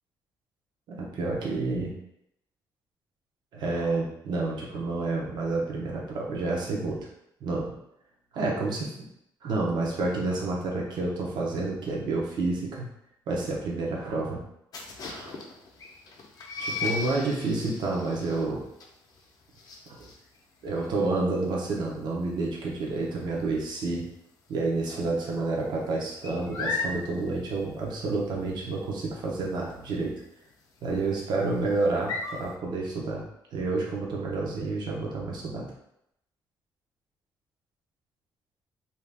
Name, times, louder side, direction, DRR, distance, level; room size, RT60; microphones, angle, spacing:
voice 1, 0.9-2.0 3.5-7.1 7.4-7.8 8.3-8.9 9.4-12.9 13.3-14.4 15.1-15.3 16.6-18.6 20.0-20.1 20.6-24.1 24.5-30.2 30.8-33.2 33.5-35.7, right 3 dB, 70° right, -2 dB, 0.8 m, -29 dB
sound 1, 14.7-24.2 24.5-24.9 25.1-32.6, left 4 dB, 50° left, 0.6 m, -37 dB
2.7 x 2.4 x 3.4 m, 0.79 s
cardioid pair, 125°, 8 cm